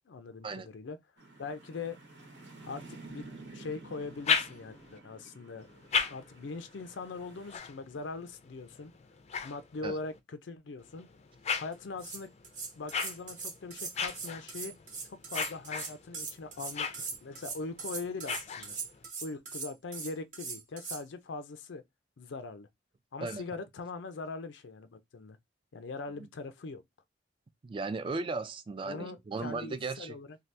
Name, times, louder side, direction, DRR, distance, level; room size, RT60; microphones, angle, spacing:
voice 1, 0.1-1.0 1.4-2.0 2.7-3.3 3.5-5.7 6.1-8.9 9.4-11.1 11.6-12.3 12.8-14.7 15.0-18.8 19.2-21.8 22.2-22.7 23.1-25.4 25.7-26.8 28.9-30.4, left 3 dB, 90° left, 0.5 m, -41 dB
sound 1, 1.2-7.6, right 2 dB, 75° right, 1.0 m, -51 dB
sound 2, 4.0-5.0 5.6-10.2 10.8-19.1, left 6 dB, 35° left, 0.4 m, -38 dB
sound 3, 11.7-11.8 12.0-21.0, right 4 dB, 45° right, 0.9 m, -40 dB
voice 2, 27.6-30.2, right 3 dB, 30° right, 0.3 m, -36 dB
2.8 x 2.2 x 3.2 m
head